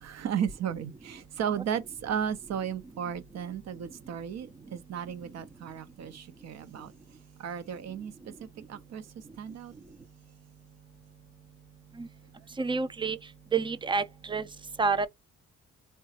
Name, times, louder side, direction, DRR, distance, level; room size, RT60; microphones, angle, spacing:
voice 1, 0.0-6.9 7.4-8.1 8.4-9.0 9.4-9.7, right 8 dB, 60° right, 0.7 m, -34 dB
voice 2, 12.6-13.2 13.5-14.5 14.8-15.1, right 4 dB, 15° right, 0.4 m, -28 dB
3.7 x 2.3 x 2.8 m
cardioid pair, 90°, 30 cm